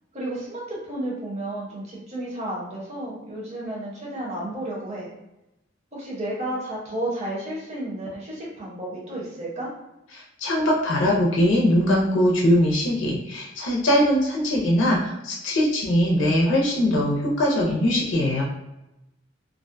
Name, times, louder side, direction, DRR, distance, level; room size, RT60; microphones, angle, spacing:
voice 1, 0.1-5.1 5.9-9.7, right 1 dB, 35° right, -5 dB, 0.8 m, -32 dB
voice 2, 10.1-18.4, equal, 85° left, -3 dB, 0.5 m, -21 dB
2.4 x 2.1 x 2.5 m, 0.93 s
head